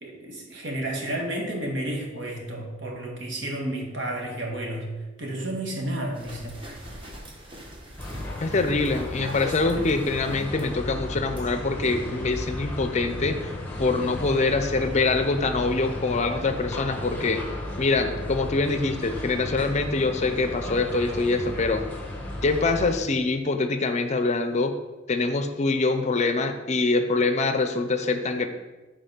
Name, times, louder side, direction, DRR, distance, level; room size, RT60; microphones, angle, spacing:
voice 1, 0.0-4.9 5.2-6.6, right 1 dB, 70° right, 0 dB, 1.4 m, -31 dB
sound 1, 6.1-10.6 11.4-11.5, equal, 30° right, 1.2 m, -40 dB
sound 2, 8.0-22.9, left 1 dB, 10° left, 1.0 m, -34 dB
voice 2, 8.4-13.5 13.8-17.4 17.8-21.8 22.4-24.7 25.1-28.5, left 3 dB, 35° left, 8 dB, 0.5 m, -24 dB
sound 3, 9.8-15.2, equal, 85° right, 1.6 m, -45 dB
5.3 x 4.2 x 5.9 m, 1.1 s
head